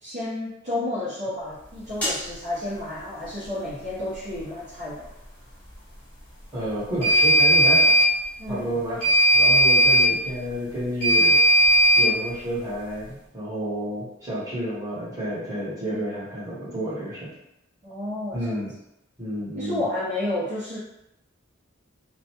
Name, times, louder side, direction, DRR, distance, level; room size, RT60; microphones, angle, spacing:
voice 1, 0.0-5.1 8.4-8.7 15.9-16.0 17.8-18.6 19.6-20.8, left 1 dB, 40° right, -10 dB, 0.7 m, -31 dB
sound 1, 2.0-2.2 7.0-8.1 9.0-10.1 11.0-12.1, equal, 5° left, 1.1 m, -17 dB
voice 2, 6.5-7.9 8.5-9.0 9.3-11.4 12.0-17.3 18.3-18.7 19.2-19.8, equal, 15° right, -9 dB, 1.1 m, -30 dB
2.5 x 2.1 x 2.8 m, 0.85 s
head